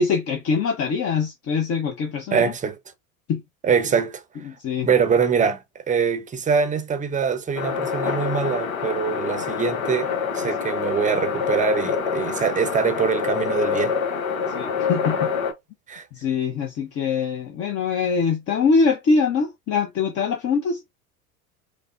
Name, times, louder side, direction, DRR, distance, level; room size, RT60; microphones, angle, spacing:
voice 1, 0.0-2.5 3.3-3.4 4.5-4.9 14.5-15.3 16.1-20.8, left 5 dB, 35° left, 0.8 m, -23 dB
voice 2, 2.3-2.8 3.6-4.2 4.8-5.6 5.9-10.1 10.3-14.0 15.9-16.0, right 6 dB, 20° right, 0.7 m, -23 dB
sound 1, 7.6-15.5, left 6 dB, 70° left, 1.1 m, -26 dB
4.9 x 2.1 x 2.5 m
hypercardioid pair, 80°, 43 cm